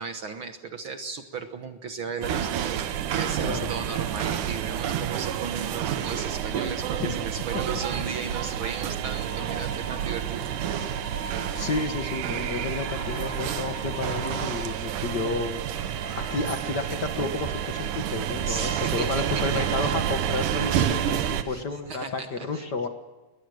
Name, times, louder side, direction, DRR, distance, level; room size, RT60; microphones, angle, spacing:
voice 1, 0.0-10.5 18.4-19.9 21.4-22.7, right 5 dB, 55° right, 8 dB, 1.6 m, -36 dB
sound 1, 2.2-21.4, right 10 dB, 85° right, 2.7 m, -29 dB
sound 2, 9.2-14.7, left 1 dB, 25° left, 2.4 m, -42 dB
voice 2, 11.5-22.9, left 3 dB, 40° left, 6 dB, 1.7 m, -31 dB
sound 3, 12.7-13.8 15.7-17.2, equal, 5° right, 3.4 m, -45 dB
21.5 x 20.5 x 6.4 m, 1.1 s
omnidirectional pair, 3.5 m